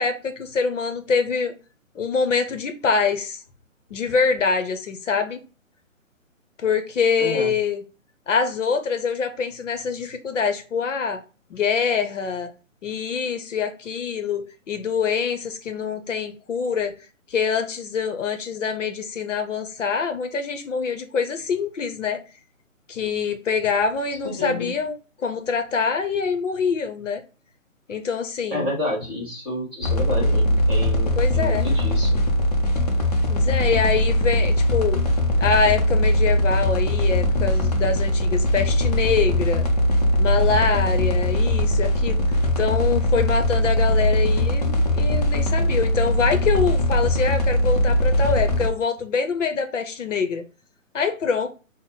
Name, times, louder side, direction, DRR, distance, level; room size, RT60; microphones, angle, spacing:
voice 1, 0.0-1.5 1.9-3.4 3.9-5.4 6.6-7.8 8.3-11.2 11.5-12.5 12.8-16.9 17.3-22.2 22.9-27.2 27.9-28.7 31.2-31.7 33.3-35.0 35.4-39.7 40.2-42.2 42.6-50.4 50.9-51.5, left 5 dB, 65° left, 0.7 m, -24 dB
voice 2, 7.2-7.5 24.4-24.7 28.5-32.2, left 1 dB, 10° right, 1.4 m, -29 dB
sound 1, 29.8-48.7, left 1 dB, 30° left, 0.5 m, -20 dB
3.9 x 2.1 x 3.6 m
hypercardioid pair, 150°, 40 cm